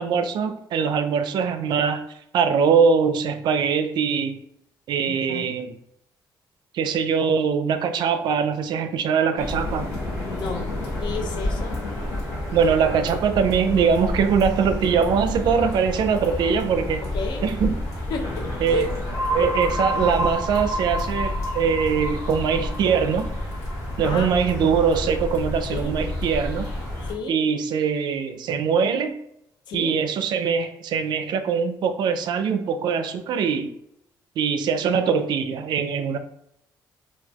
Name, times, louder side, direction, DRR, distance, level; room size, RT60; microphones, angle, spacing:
voice 1, 0.0-2.0 2.3-4.4 4.9-5.8 6.7-9.9 12.5-17.0 17.4-17.8 18.6-18.9 19.3-23.3 24.0-26.7 27.3-29.2 29.7-33.7 34.4-36.2, right 6 dB, 65° right, 9 dB, 0.4 m, -22 dB
voice 2, 5.1-5.5 10.2-10.7 11.0-11.8 17.1-17.5 18.1-18.9 24.0-24.3 25.7-26.0 27.1-27.4 29.7-30.0 35.0-35.1, left 4 dB, 70° left, 4 dB, 0.5 m, -32 dB
sound 1, 9.4-27.1, left 1 dB, 40° left, 1.4 m, -30 dB
sound 2, 19.1-24.8, equal, 10° right, 0.8 m, -30 dB
4.0 x 2.3 x 2.9 m, 0.77 s
cardioid pair, 150°, 8 cm